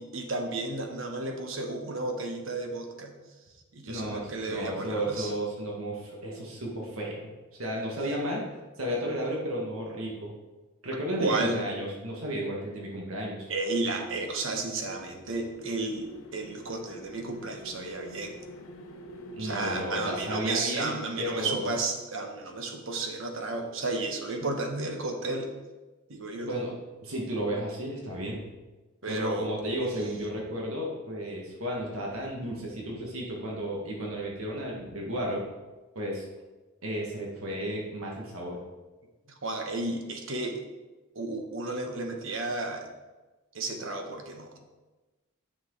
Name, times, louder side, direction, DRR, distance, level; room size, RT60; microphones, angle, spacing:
voice 1, 0.0-3.1 3.7-5.3 11.2-11.6 13.5-18.3 19.4-25.5 26.1-26.5 29.0-29.5 39.4-40.6 41.1-42.9 43.5-44.6, right 2 dB, 65° right, 4 dB, 1.2 m, -33 dB
voice 2, 3.9-7.3 7.6-8.4 8.8-10.3 10.8-13.5 19.4-20.9 21.2-21.7 26.4-26.7 27.0-28.4 29.1-35.4 35.9-36.2 36.8-38.6, equal, 80° right, -2 dB, 1.8 m, -33 dB
sound 1, 14.3-20.5, right 1 dB, 75° left, 0.9 m, -45 dB
8.8 x 6.2 x 4.0 m, 1.2 s
head